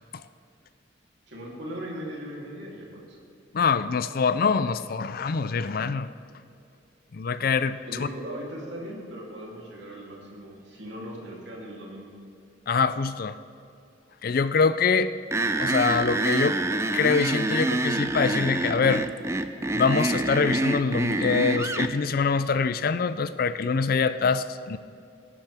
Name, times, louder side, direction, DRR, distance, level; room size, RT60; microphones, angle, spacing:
voice 1, 1.3-3.2 7.8-12.1, equal, 70° right, -3 dB, 3.2 m, -38 dB
voice 2, 3.5-6.1 7.1-8.1 12.7-13.3 14.2-15.1 15.6-16.6 16.9-19.1 19.7-24.8, left 5 dB, 50° left, 13 dB, 0.4 m, -24 dB
sound 1, 15.3-21.9, right 2 dB, 15° right, 0.5 m, -26 dB
19.0 x 11.0 x 3.5 m, 2.5 s
head